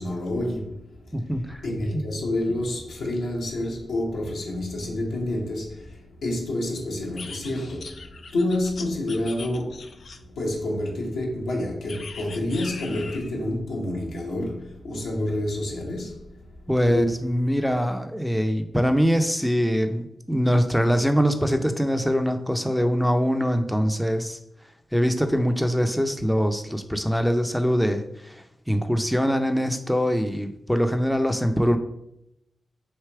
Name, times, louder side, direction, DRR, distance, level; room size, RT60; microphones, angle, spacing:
voice 1, 0.0-1.1 1.6-16.5 16.9-17.2, left 1 dB, 85° left, 1.1 m, -29 dB
voice 2, 1.1-1.6 1.9-2.0 16.7-24.4 24.9-31.8, equal, 5° left, 0.6 m, -23 dB
sound 1, 7.2-10.4 11.9-13.4, left 4 dB, 70° left, 0.4 m, -40 dB
3.3 x 2.8 x 4.6 m
supercardioid pair, 40°, 0 cm